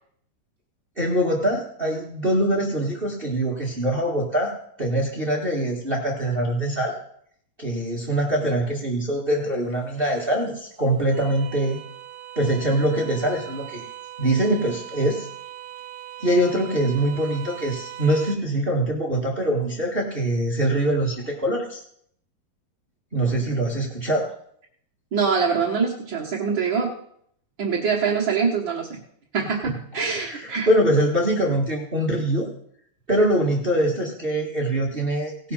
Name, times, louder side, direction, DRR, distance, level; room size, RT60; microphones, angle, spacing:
voice 1, 1.0-7.0 7.6-11.8 12.3-13.8 14.2-15.3 16.2-21.8 23.1-24.3 30.1-32.5 33.1-35.5, right 1 dB, 45° right, -2 dB, 0.7 m, -23 dB
sound 1, 9.4-18.4, right 12 dB, 70° right, 2.3 m, -41 dB
voice 2, 25.1-26.9 27.6-29.0 29.3-30.7, right 5 dB, 85° right, -2 dB, 1.0 m, -24 dB
17.5 x 6.7 x 5.6 m, 0.66 s
omnidirectional pair, 4.5 m